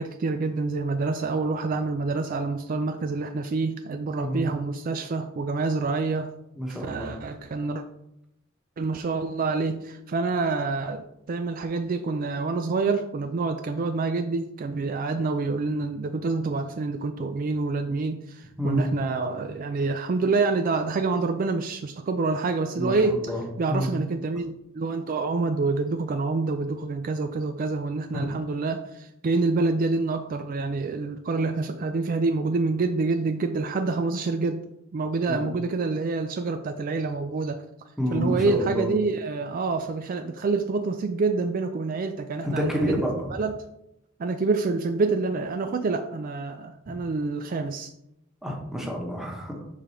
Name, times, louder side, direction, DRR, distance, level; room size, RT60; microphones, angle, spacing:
voice 1, 0.0-6.3 6.8-7.8 8.8-23.2 23.6-34.6 34.9-37.6 38.1-42.9 43.3-43.5 44.2-47.9, right 3 dB, 45° right, 7 dB, 0.3 m, -27 dB
voice 2, 6.5-7.2 18.6-18.8 22.7-23.4 23.7-23.9 28.1-28.3 35.3-35.4 38.0-38.9 42.4-43.3 46.9-47.0 48.4-49.6, equal, ahead, -1 dB, 1.1 m, -28 dB
4.8 x 3.8 x 5.6 m, 0.82 s
head